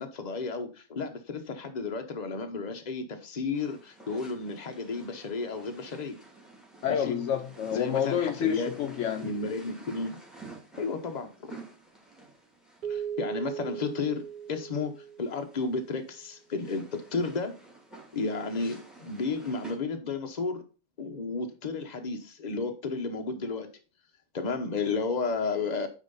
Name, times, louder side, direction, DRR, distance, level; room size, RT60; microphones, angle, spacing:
voice 1, 0.0-6.2 6.9-7.2 7.7-8.8 9.2-10.2 10.8-11.6 12.9-14.9 15.2-17.5 18.1-20.6 21.0-23.7 24.3-25.9, left 4 dB, 35° left, 1.0 m, -32 dB
sound 1, 3.5-19.7, right 3 dB, ahead, 2.6 m, -51 dB
voice 2, 6.8-9.4, left 9 dB, 70° left, 0.9 m, -29 dB
Keyboard (musical), 12.8-15.8, right 8 dB, 50° right, 0.7 m, -38 dB
9.2 x 3.7 x 5.4 m
omnidirectional pair, 1.4 m